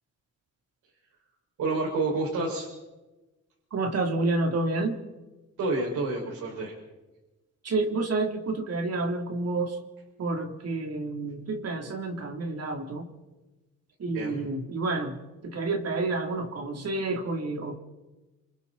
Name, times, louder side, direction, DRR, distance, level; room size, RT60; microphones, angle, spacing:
voice 1, 1.6-2.7 5.6-6.7 14.0-14.4, right 3 dB, 80° right, -2 dB, 6.2 m, -29 dB
voice 2, 3.7-5.0 7.6-9.8 10.2-13.1 14.0-17.7, right 3 dB, 55° right, 2 dB, 3.7 m, -29 dB
28.5 x 26.0 x 4.4 m, 1.1 s
cardioid pair, 90°, 30 cm